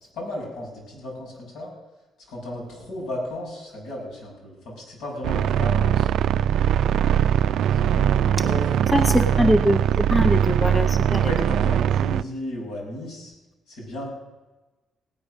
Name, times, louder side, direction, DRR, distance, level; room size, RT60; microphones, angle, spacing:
voice 1, 0.1-1.7 2.3-6.1 7.7-9.5 11.2-13.3 13.7-14.1, left 1 dB, 85° left, -3 dB, 6.2 m, -34 dB
sound 1, 5.2-12.2, right 9 dB, 75° right, 0.4 m, -21 dB
voice 2, 8.9-11.3, equal, 15° left, 6 dB, 0.9 m, -22 dB
18.0 x 8.7 x 6.5 m, 1.1 s
cardioid pair, 90°, 0 cm